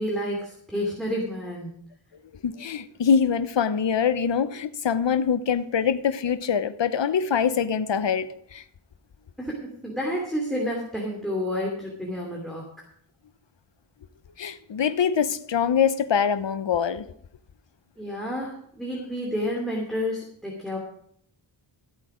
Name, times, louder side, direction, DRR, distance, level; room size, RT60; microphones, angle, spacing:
voice 1, 0.0-1.8 9.4-12.7 18.0-20.8, equal, ahead, 2.9 m, -30 dB
voice 2, 2.4-8.6 14.4-17.1, left 7 dB, 65° left, 0.9 m, -24 dB
14.0 x 8.3 x 5.0 m
wide cardioid pair, 65°, 48 cm